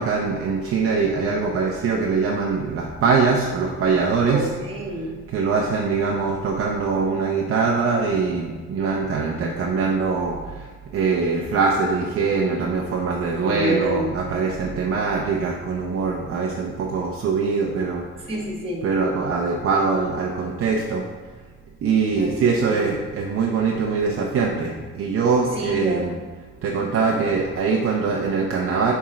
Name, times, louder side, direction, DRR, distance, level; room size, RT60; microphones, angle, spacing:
voice 1, 0.0-4.5 5.3-18.0 18.8-21.1 21.8-26.1 26.6-28.9, right 4 dB, 45° right, -1 dB, 0.7 m, -23 dB
voice 2, 4.3-5.1 13.4-14.1 18.3-18.9 22.2-22.3 22.6-22.9 25.6-26.1, right 1 dB, 20° right, -2 dB, 1.5 m, -27 dB
7.2 x 3.6 x 4.9 m, 1.4 s
cardioid pair, 140°, 30 cm